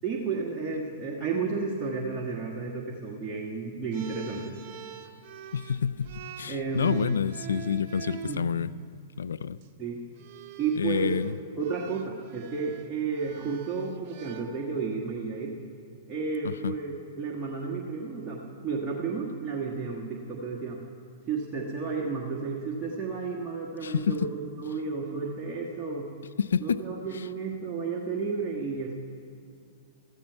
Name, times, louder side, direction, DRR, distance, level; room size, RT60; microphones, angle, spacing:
voice 1, 0.0-4.5 6.5-7.1 8.2-8.4 9.8-10.0 10.6-11.2 11.6-15.5 16.1-20.8 21.3-26.1 26.6-29.0, right 4 dB, 20° right, -4 dB, 1.5 m, -32 dB
sound 1, 3.9-8.4 9.4-9.7 10.2-15.0, right 9 dB, 50° right, 0.9 m, -45 dB
voice 2, 5.5-8.7 9.2-9.6 10.8-11.3 16.4-16.7 23.8-24.3 26.4-26.8 27.1-27.2, left 7 dB, 80° left, 15 dB, 0.3 m, -28 dB
14.0 x 13.5 x 4.6 m, 2.4 s
hypercardioid pair, 115°, 0 cm